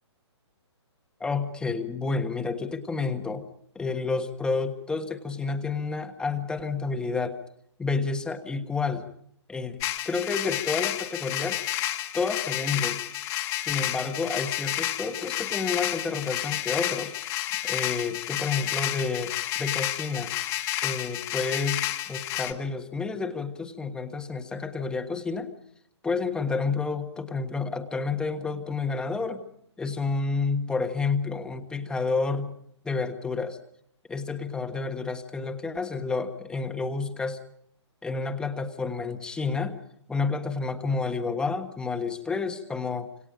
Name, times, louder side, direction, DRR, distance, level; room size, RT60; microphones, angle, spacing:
voice 1, 1.2-3.4 3.7-7.4 7.8-9.0 9.5-11.6 12.1-13.0 13.6-17.1 17.6-19.3 19.6-20.3 20.8-25.5 26.0-29.4 29.8-32.5 32.8-33.6 34.1-37.4 38.0-39.8 40.1-43.1, left 4 dB, 5° left, 6 dB, 1.4 m, -30 dB
sound 1, 9.8-22.5, left 14 dB, 20° left, 1.7 m, -30 dB
27.0 x 26.0 x 5.2 m, 0.69 s
hypercardioid pair, 155°, 15 cm